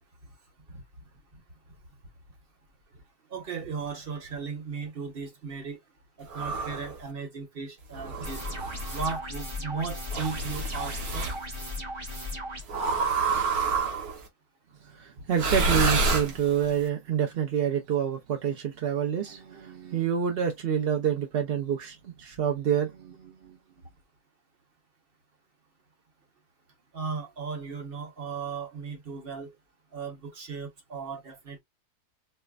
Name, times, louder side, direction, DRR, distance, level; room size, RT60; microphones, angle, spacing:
voice 1, 3.3-5.8 6.2-8.4 8.9-11.3 26.9-29.5 29.9-31.6, right 5 dB, 40° right, 1.1 m, -36 dB
sound 1, 6.3-7.0 7.9-9.1 10.1-11.4 12.7-14.2 15.3-16.7, right 3 dB, 75° right, 1.6 m, -28 dB
sound 2, 8.2-12.6, left 1 dB, 25° right, 0.8 m, -36 dB
voice 2, 14.8-23.6, right 8 dB, 60° right, 0.6 m, -28 dB
4.6 x 2.1 x 2.3 m
omnidirectional pair, 1.6 m